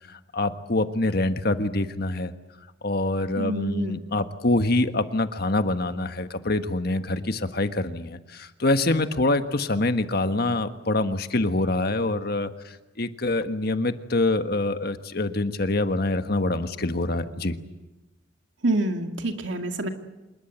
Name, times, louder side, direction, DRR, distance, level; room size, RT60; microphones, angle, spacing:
voice 1, 0.1-2.3 2.8-17.6, left 2 dB, 50° left, 9 dB, 1.4 m, -25 dB
voice 2, 3.4-4.0 18.6-19.9, right 2 dB, 70° right, 5 dB, 2.2 m, -27 dB
27.0 x 20.5 x 8.2 m, 1.1 s
head